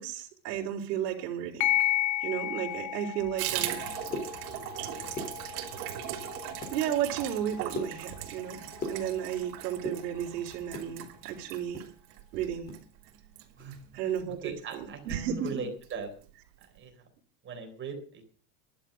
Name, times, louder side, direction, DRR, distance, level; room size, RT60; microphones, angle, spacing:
voice 1, 0.0-1.7 2.2-3.9 6.7-8.6 8.9-11.9 12.3-12.7 13.9-15.7, right 9 dB, 85° right, -2 dB, 3.9 m, -33 dB
sound 1, 1.6-10.6, left 13 dB, 40° left, 1.0 m, -35 dB
Water tap faucet / Bathtub (filling or washing), 3.4-14.3 14.6-14.8 15.1-15.2 15.5-16.0 16.2-16.3 16.6-16.7, right 13 dB, 60° right, 3.4 m, -39 dB
sound 2, 4.1-4.8 5.0-5.9 6.3-6.8 7.2-9.5 9.7-10.9 11.3-12.8 13.1-13.2 13.6-13.8 14.2-14.4, left 2 dB, 20° left, 3.9 m, -40 dB
voice 2, 14.4-16.1 16.7-16.9 17.4-18.2, right 5 dB, 25° right, 4 dB, 3.8 m, -39 dB
14.0 x 11.5 x 6.7 m, 0.42 s
supercardioid pair, 165°, 48 cm